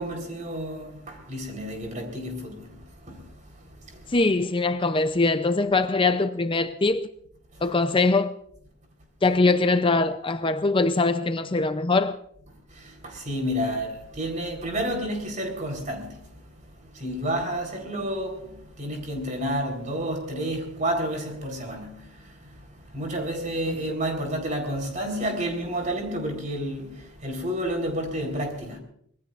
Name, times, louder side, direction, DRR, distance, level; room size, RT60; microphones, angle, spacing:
voice 1, 0.0-4.2 7.5-7.6 12.7-28.8, equal, 40° right, 4.1 m, -31 dB
voice 2, 4.1-7.1 7.6-8.3 9.2-12.2 23.7-23.8, left 3 dB, 25° left, 0.6 m, -22 dB
25.5 x 20.0 x 2.5 m
head